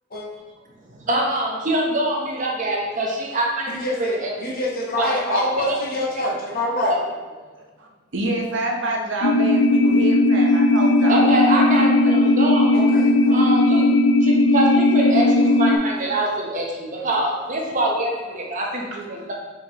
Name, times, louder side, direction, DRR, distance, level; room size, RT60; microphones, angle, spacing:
voice 1, 0.9-4.3 5.0-5.8 6.8-6.9 7.4-7.5 11.1-12.8 13.3-13.9 14.2-19.3, right 1 dB, 40° right, -1 dB, 0.9 m, -24 dB
voice 2, 3.7-6.9 12.7-13.5, left 1 dB, 50° left, -4 dB, 0.9 m, -26 dB
voice 3, 7.5-7.9 8.1-12.2 15.6-16.2 17.0-17.1 18.9-19.1, right 2 dB, 70° right, 0 dB, 0.7 m, -29 dB
sound 1, 9.2-15.8, left 2 dB, 90° left, 0.3 m, -17 dB
4.5 x 3.8 x 3.0 m, 1.3 s
head